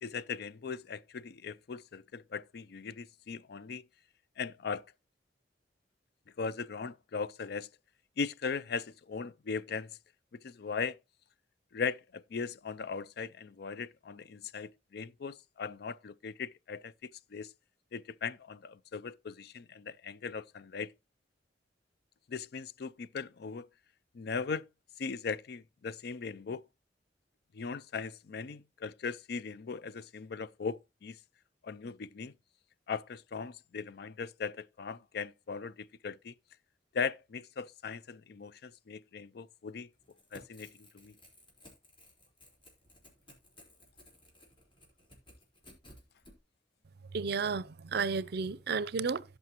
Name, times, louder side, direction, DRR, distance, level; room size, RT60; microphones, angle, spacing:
voice 1, 0.0-3.8 4.4-4.8 6.4-7.7 8.2-10.0 10.3-11.0 11.7-17.5 17.9-20.9 22.3-23.7 24.1-24.7 25.0-26.6 27.5-31.2 31.6-32.3 32.9-36.4 36.9-39.9 40.3-41.1, left 5 dB, 60° left, 0.4 m, -39 dB
Crackle / Tearing, 40.0-46.3, left 1 dB, 30° left, 4.3 m, -57 dB
voice 2, 47.1-49.2, right 5 dB, 60° right, 0.5 m, -32 dB
17.0 x 5.6 x 2.9 m
head